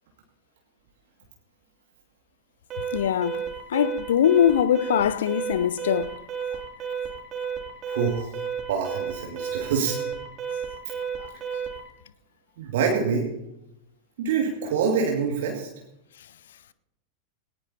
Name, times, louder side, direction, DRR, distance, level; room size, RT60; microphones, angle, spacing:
Alarm, 2.7-11.9, right 7 dB, 30° right, 2.8 m, -32 dB
voice 1, 2.9-6.2 6.5-6.6, left 9 dB, 60° left, 0.5 m, -22 dB
voice 2, 7.8-8.3 8.7-10.0 12.6-13.3 14.2-15.7, right 6 dB, 55° right, 2.1 m, -25 dB
19.0 x 18.5 x 2.8 m
figure-of-eight pair, 90°, 0 cm